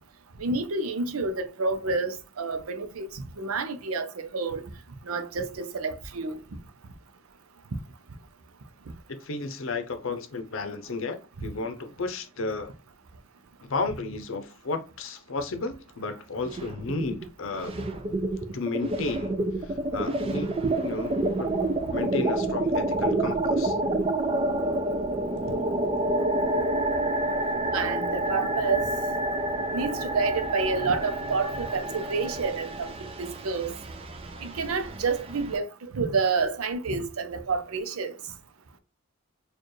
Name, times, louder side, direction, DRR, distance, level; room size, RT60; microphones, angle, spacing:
voice 1, 0.4-4.6 5.1-6.4 27.7-28.9 29.7-32.9 33.2-33.7 34.4-35.7 35.9-38.1, right 4 dB, 90° right, 0.6 m, -29 dB
voice 2, 9.1-12.7 13.7-17.7 18.5-19.3 19.6-21.5 21.9-23.8, left 3 dB, 70° left, 0.6 m, -33 dB
sound 1, 16.4-17.2 17.5-35.6, right 2 dB, 25° right, 0.4 m, -28 dB
4.4 x 2.4 x 3.1 m
head